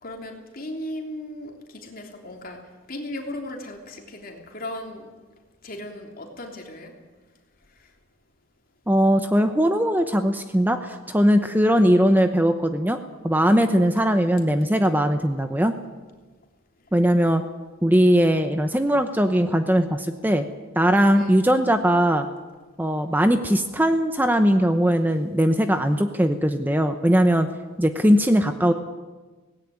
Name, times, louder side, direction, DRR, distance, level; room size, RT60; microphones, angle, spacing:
voice 1, 0.0-2.6 2.9-5.1 5.6-6.9 21.1-21.4, left 1 dB, 45° left, 2 dB, 3.3 m, -36 dB
voice 2, 8.9-13.0 13.2-15.8 16.9-17.4 17.8-20.4 20.8-22.3 22.8-27.5 27.8-28.7, equal, 10° right, 7 dB, 0.8 m, -20 dB
18.0 x 17.0 x 8.8 m, 1.3 s
head